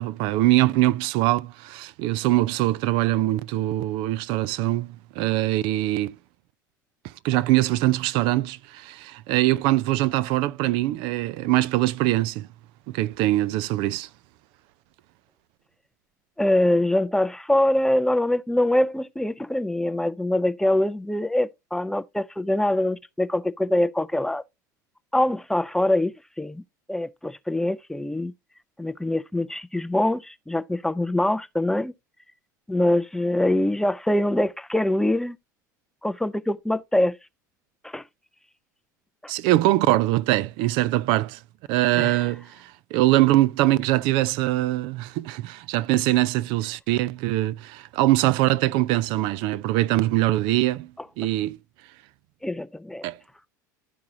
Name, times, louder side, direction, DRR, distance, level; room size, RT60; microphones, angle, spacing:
voice 1, 0.0-6.1 7.2-12.5 12.9-14.1 39.3-41.4 41.7-50.9 51.2-51.6 53.0-53.2, right 16 dB, 55° right, 0.5 m, -23 dB
voice 2, 16.4-24.4 25.1-26.6 26.9-28.3 28.8-31.9 32.7-35.4 36.0-37.2 37.8-38.0 39.2-39.3 42.0-42.1 52.4-53.0, left 1 dB, 5° left, 0.5 m, -24 dB
12.0 x 4.7 x 2.7 m
figure-of-eight pair, 70°, 10 cm